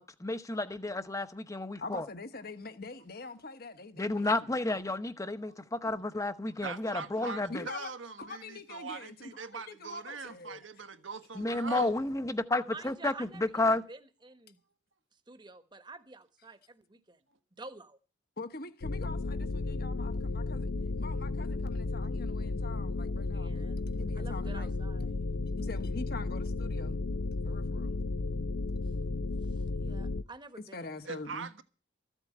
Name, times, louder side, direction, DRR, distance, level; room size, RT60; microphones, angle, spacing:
voice 1, 0.0-2.1 4.0-7.6 11.3-13.8, left 2 dB, 15° left, 0.9 m, -31 dB
voice 2, 1.8-4.3 7.3-10.6 18.4-24.7 25.6-27.0 27.4-27.9 30.7-31.5, left 3 dB, 50° left, 1.3 m, -44 dB
voice 3, 6.6-11.9 31.0-31.6, right 4 dB, 80° right, 1.4 m, -41 dB
voice 4, 12.7-13.4 13.7-14.6 15.3-17.2 17.6-18.0 23.3-25.3 29.5-31.0, right 3 dB, 25° right, 1.2 m, -49 dB
sound 1, 18.8-30.2, left 3 dB, 75° left, 0.6 m, -34 dB
14.5 x 8.1 x 8.6 m
head